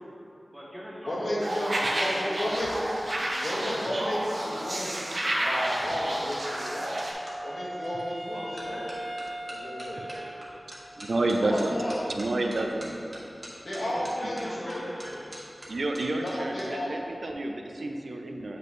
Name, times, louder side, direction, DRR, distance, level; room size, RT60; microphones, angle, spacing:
voice 1, 0.5-2.4 8.3-9.2 9.9-10.6 11.5-11.6 13.8-15.4, equal, 5° right, -6 dB, 1.5 m, -42 dB
voice 2, 1.0-2.8 3.4-5.1 5.4-7.0 7.4-8.8 9.5-10.0 11.4-12.1 13.6-14.8 16.2-16.9, equal, 75° left, -6 dB, 1.5 m, -32 dB
sound 1, 1.4-7.1, right 1 dB, 55° right, 1.0 m, -30 dB
sound 2, 2.4-7.4 8.0-8.3 8.6-16.6 16.9-17.3, right 1 dB, 40° right, 1.4 m, -47 dB
Wind instrument woodwind instrument, 6.1-10.9, right 1 dB, 10° left, 0.5 m, -39 dB
voice 3, 11.0-11.8 12.1-12.9 15.7-18.6, right 2 dB, 75° right, 3 dB, 0.5 m, -29 dB
7.6 x 5.1 x 3.2 m, 2.7 s
wide cardioid pair, 65°, 0 cm